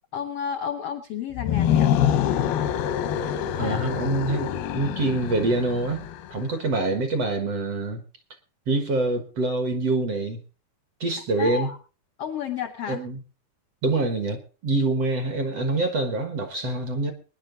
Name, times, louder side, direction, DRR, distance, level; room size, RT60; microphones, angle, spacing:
voice 1, 0.1-1.9 3.6-4.1 11.4-11.8 12.2-13.0, left 8 dB, 75° left, 7 dB, 1.4 m, -32 dB
sound 1, 1.3-6.4, left 10 dB, 90° left, 2.9 m, -25 dB
voice 2, 3.6-8.0 8.7-10.4 11.0-11.7 12.9-13.2 13.8-17.1, right 2 dB, 55° right, 7 dB, 2.0 m, -25 dB
22.5 x 10.5 x 3.9 m, 0.37 s
omnidirectional pair, 4.3 m